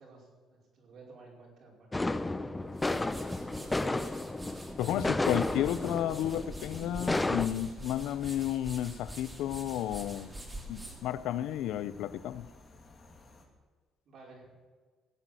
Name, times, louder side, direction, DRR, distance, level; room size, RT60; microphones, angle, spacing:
voice 1, 0.0-2.0 2.4-3.4 14.1-14.5, right 3 dB, 60° right, -2 dB, 5.2 m, -54 dB
sound 1, 1.9-7.5, left 2 dB, 15° left, 0.6 m, -32 dB
sound 2, 2.5-11.9, right 1 dB, 15° right, 2.7 m, -46 dB
voice 2, 4.8-10.3 10.7-12.4, left 12 dB, 80° left, 15 dB, 0.5 m, -32 dB
sound 3, 5.1-13.5, left 3 dB, 35° left, 2.7 m, -56 dB
17.0 x 8.3 x 7.9 m, 1.5 s
cardioid pair, 115°, 0 cm